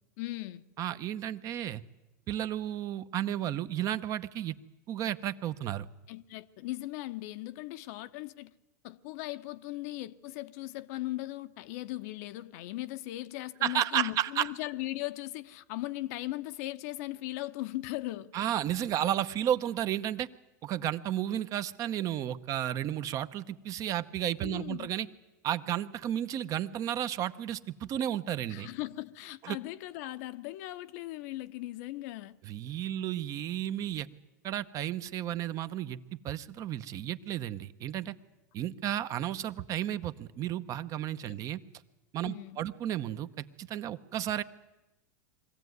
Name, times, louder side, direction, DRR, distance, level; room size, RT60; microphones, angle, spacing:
voice 1, 0.2-0.6 6.1-8.5 8.8-18.4 24.4-24.9 28.5-32.4 41.3-41.4 42.2-42.6, left 17 dB, 60° left, 0.8 m, -38 dB
voice 2, 0.8-1.8 2.3-4.5 4.9-5.9 13.6-14.5 18.3-20.3 20.6-25.1 25.4-28.7 29.4-29.6 32.4-34.1 34.4-38.1 38.5-41.6 42.1-44.4, right 11 dB, 40° right, 0.9 m, -33 dB
22.5 x 15.5 x 9.5 m
supercardioid pair, 120°, 9 cm